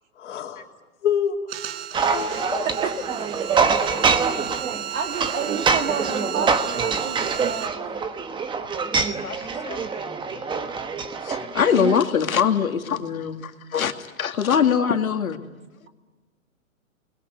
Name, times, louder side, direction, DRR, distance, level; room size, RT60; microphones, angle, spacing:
voice 1, 0.2-0.6 1.0-1.4 1.7-2.5, left 8 dB, 60° left, 3 dB, 3.1 m, -27 dB
sound 1, 1.5-7.7, right 10 dB, 45° right, 1.0 m, -34 dB
sound 2, 1.9-12.0, right 5 dB, 10° right, 1.1 m, -25 dB
voice 2, 2.3-7.4, right 6 dB, 65° right, 4 dB, 3.0 m, -31 dB
voice 3, 8.5-10.7 11.2-15.5, left 7 dB, 80° left, 6 dB, 2.3 m, -24 dB
29.0 x 21.0 x 9.4 m, 1.2 s
hypercardioid pair, 130°, 41 cm